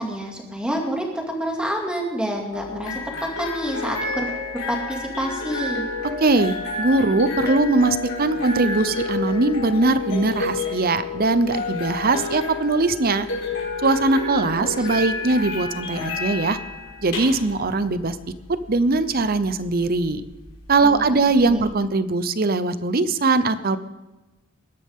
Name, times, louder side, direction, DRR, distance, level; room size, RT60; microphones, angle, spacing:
voice 1, 0.0-4.3 4.7-5.8 14.6-14.9 20.8-21.2 21.5-21.6, equal, 5° right, 0 dB, 2.4 m, -28 dB
sound 1, 2.5-21.6, left 3 dB, 70° left, 4.7 m, -30 dB
voice 2, 6.2-13.3 13.8-16.6 17.0-18.2 18.5-20.2 20.7-23.8, right 3 dB, 45° right, 13 dB, 0.8 m, -21 dB
20.5 x 11.0 x 3.7 m, 1.1 s
head